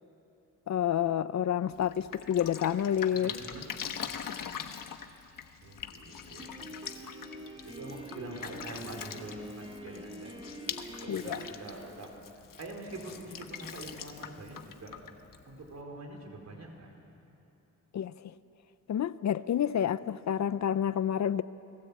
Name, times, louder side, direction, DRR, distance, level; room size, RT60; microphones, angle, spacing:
voice 1, 0.7-3.3 11.1-11.4 17.9-18.3 18.9-21.4, left 9 dB, 60° left, 0.5 m, -29 dB
Drip, 1.7-15.8, left 8 dB, 85° left, 1.3 m, -43 dB
voice 2, 3.1-3.8 5.6-6.7 7.6-10.3 11.0-12.1 12.6-14.9 15.5-16.9, right 2 dB, 55° right, 4.3 m, -44 dB
Piano, 6.4-11.5, right 1 dB, 20° right, 2.3 m, -45 dB
30.0 x 19.5 x 8.4 m
wide cardioid pair, 175°, 32 cm